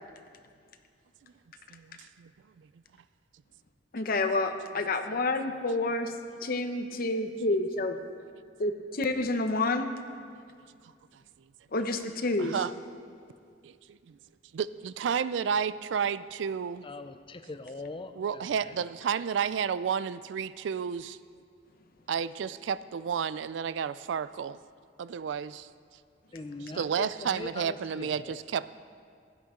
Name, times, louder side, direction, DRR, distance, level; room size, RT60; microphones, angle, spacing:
voice 1, 1.7-2.3 12.4-12.7 13.6-14.2 14.5-16.8 18.2-21.2 22.1-24.6 25.0-25.7 26.7-28.7, right 7 dB, 75° right, 16 dB, 0.3 m, -31 dB
voice 2, 3.9-6.1 6.4-8.0 8.6-8.7 9.0-9.9 11.7-12.5, left 2 dB, 55° left, 7 dB, 0.8 m, -28 dB
voice 3, 16.8-18.8 26.3-28.4, left 3 dB, 30° left, 10 dB, 0.5 m, -42 dB
16.0 x 11.5 x 3.7 m, 2.2 s
head